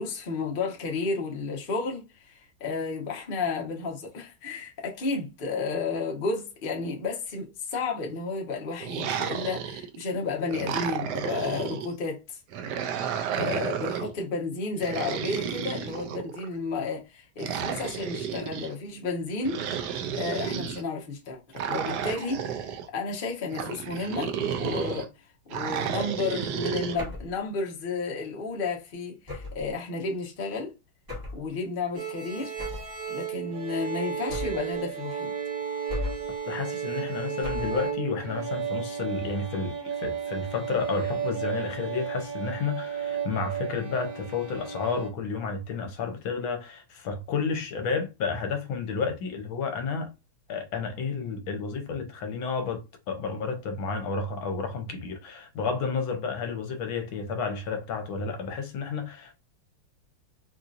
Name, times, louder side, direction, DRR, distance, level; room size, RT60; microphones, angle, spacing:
voice 1, 0.0-12.4 13.4-24.3 24.6-25.1 25.5-30.7 31.3-32.5 33.1-35.3, left 4 dB, 40° left, 0.7 m, -32 dB
sound 1, 8.8-10.0 10.5-11.9 12.5-14.1 14.8-16.5 17.4-18.7 19.4-20.8 21.5-22.9 23.5-25.1 25.5-27.0, right 8 dB, 80° right, 0.9 m, -32 dB
sound 2, 27.0-27.4 29.3-29.7 31.1-31.5 32.6-33.0 34.3-34.7 35.9-36.4 37.4-37.8, left 2 dB, 15° right, 1.0 m, -35 dB
sound 3, 32.0-45.1, right 8 dB, 50° right, 1.3 m, -33 dB
voice 2, 36.5-50.1 50.5-59.4, left 5 dB, 75° left, 1.5 m, -31 dB
4.3 x 2.7 x 2.5 m
omnidirectional pair, 2.3 m